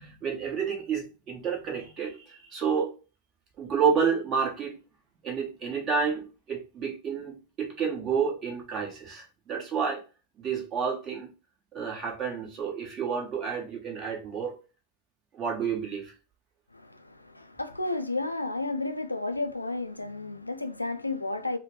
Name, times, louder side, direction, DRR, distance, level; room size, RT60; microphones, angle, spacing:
voice 1, 0.0-2.9 3.6-4.8 5.2-10.0 10.4-11.3 11.7-14.5 15.4-16.1, right 6 dB, 30° right, 1.1 m, -30 dB
voice 2, 16.7-21.6, left 2 dB, 85° left, 0.3 m, -32 dB
3.3 x 2.0 x 3.0 m
figure-of-eight pair, 90°, 0 cm